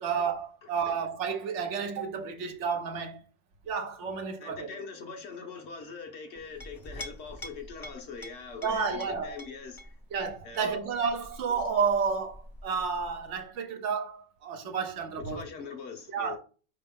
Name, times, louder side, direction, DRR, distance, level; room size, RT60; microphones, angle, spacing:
voice 1, 0.0-3.2 3.6-4.7 8.6-9.4 10.1-15.4 16.1-16.4, right 5 dB, 75° right, 1.0 m, -31 dB
voice 2, 0.6-0.9 4.4-10.0 10.4-10.8 15.3-16.4, left 4 dB, 65° left, 1.1 m, -42 dB
Chink clink, 6.4-13.5, left 1 dB, 25° left, 0.5 m, -47 dB
5.0 x 2.9 x 3.6 m
omnidirectional pair, 1.3 m